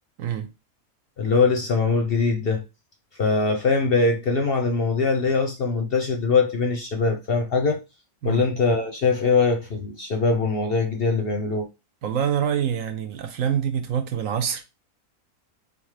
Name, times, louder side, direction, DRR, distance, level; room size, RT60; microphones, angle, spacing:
voice 1, 1.2-2.6 3.2-7.8 8.2-11.7, left 4 dB, 55° left, 0.7 m, -22 dB
voice 2, 12.0-14.7, right 8 dB, 70° right, 1.0 m, -25 dB
3.8 x 3.4 x 3.2 m
omnidirectional pair, 1.5 m